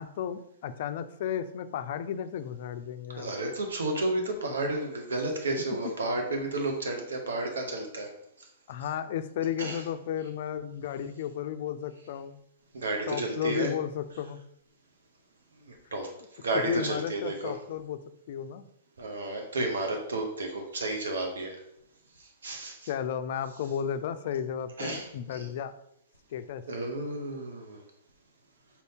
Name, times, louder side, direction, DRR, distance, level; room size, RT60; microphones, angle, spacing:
voice 1, 0.0-3.3 8.7-12.4 13.1-14.4 16.5-18.0 18.3-18.7 22.9-25.7 26.3-26.6, left 9 dB, 60° left, 12 dB, 0.3 m, -33 dB
voice 2, 3.2-8.1 8.4-8.5 9.6-9.8 12.7-13.7 15.7-17.5 19.0-21.6 22.2-22.9 24.8-25.5 26.7-27.8, right 2 dB, 85° right, 2 dB, 0.8 m, -32 dB
4.4 x 2.7 x 3.4 m, 0.77 s
hypercardioid pair, 120°, 0 cm